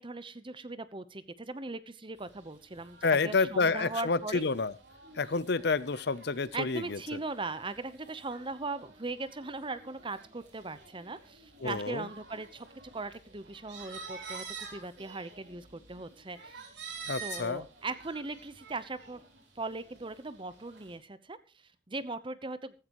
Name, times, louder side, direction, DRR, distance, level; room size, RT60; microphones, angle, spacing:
voice 1, 0.0-4.4 6.5-12.7 12.9-16.6 17.2-19.2 19.6-21.4 21.9-22.7, right 3 dB, 25° right, 14 dB, 0.9 m, -39 dB
sound 1, 2.2-20.9, right 5 dB, 65° right, 4.6 m, -49 dB
voice 2, 3.0-4.7 5.2-7.2 11.6-12.1 17.1-17.6, left 4 dB, 60° left, 18 dB, 0.7 m, -29 dB
15.0 x 13.5 x 3.1 m, 0.34 s
head